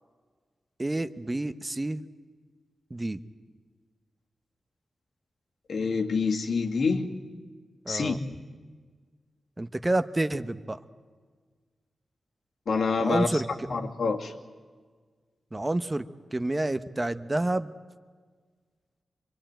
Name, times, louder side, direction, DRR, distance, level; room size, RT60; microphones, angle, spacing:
voice 1, 0.8-2.0 2.9-3.2 7.9-8.2 9.6-10.8 13.0-13.7 15.5-16.0 16.3-17.7, right 2 dB, 20° right, 11 dB, 0.9 m, -29 dB
voice 2, 5.7-7.1 7.9-8.4 12.7-14.3, left 4 dB, 70° left, 2 dB, 2.3 m, -27 dB
25.5 x 22.5 x 9.0 m, 1.5 s
wide cardioid pair, 95°, 0 cm